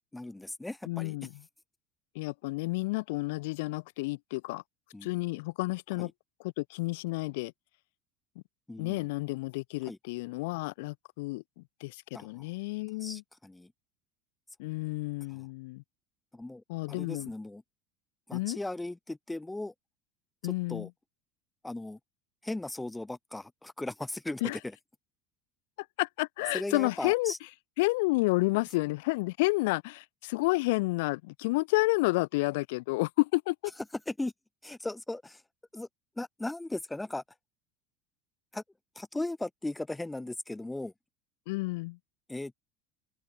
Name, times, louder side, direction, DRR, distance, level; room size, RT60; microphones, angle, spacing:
voice 1, 0.1-1.2 4.9-5.1 6.0-6.1 8.7-9.1 9.9-10.0 12.1-12.5 13.0-13.7 15.3-15.4 16.3-17.6 18.3-19.7 20.4-20.9 21.6-22.0 22.4-24.7 26.5-27.4 34.1-34.3 34.6-35.4 35.7-35.9 36.2-37.2 38.5-38.6 38.9-40.9 42.3-42.6, left 2 dB, 5° left, 1.3 m, -37 dB
voice 2, 0.9-1.3 2.1-4.6 5.0-6.1 6.4-7.5 8.8-13.2 14.6-15.8 16.7-17.3 18.3-18.6 20.4-20.9 24.4-24.6 26.0-27.3 27.8-33.5 41.5-42.0, left 23 dB, 70° left, 1.1 m, -30 dB
open air
cardioid pair, 180°, 0 cm